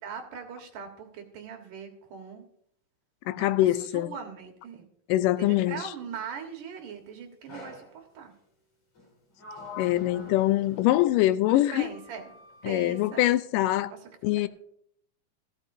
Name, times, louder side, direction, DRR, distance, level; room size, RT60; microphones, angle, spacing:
voice 1, 0.0-2.5 3.4-4.9 5.4-8.3 11.5-12.3 12.6-13.3 13.9-14.5, right 6 dB, 75° right, 3.1 m, -41 dB
voice 2, 3.3-4.1 5.1-5.8 9.8-11.9 12.6-13.9 14.2-14.5, left 15 dB, 90° left, 2.2 m, -24 dB
Sliding door, 7.5-7.9 8.9-11.4 11.9-13.3, left 3 dB, 45° left, 4.6 m, -46 dB
14.5 x 13.5 x 2.7 m
omnidirectional pair, 3.7 m